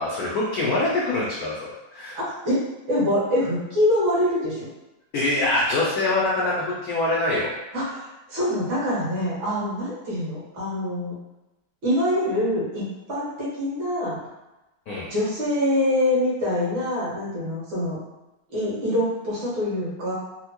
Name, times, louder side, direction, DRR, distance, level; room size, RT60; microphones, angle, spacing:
voice 1, 0.0-2.2 5.1-7.5 14.9-15.1, left 2 dB, 85° left, -5 dB, 0.8 m, -24 dB
voice 2, 2.2-4.6 7.7-11.1 11.8-14.2 15.1-18.0 18.5-20.1, left 1 dB, 65° right, -8 dB, 2.2 m, -25 dB
4.3 x 2.1 x 2.9 m, 0.99 s
omnidirectional pair, 2.4 m